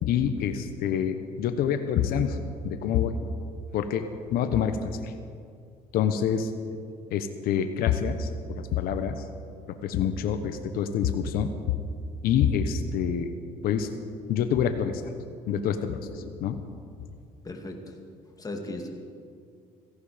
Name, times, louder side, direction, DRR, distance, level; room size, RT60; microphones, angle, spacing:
voice 1, 0.0-3.3 3.7-5.1 5.9-6.5 7.1-9.2 9.8-11.8 12.2-13.3 13.6-13.9 14.3-15.0 15.5-16.6, left 8 dB, 70° left, 8 dB, 1.0 m, -27 dB
voice 2, 17.4-18.0 18.4-18.9, left 2 dB, 25° left, 3 dB, 2.3 m, -37 dB
17.0 x 15.0 x 5.1 m, 2.3 s
cardioid pair, 95°, 16 cm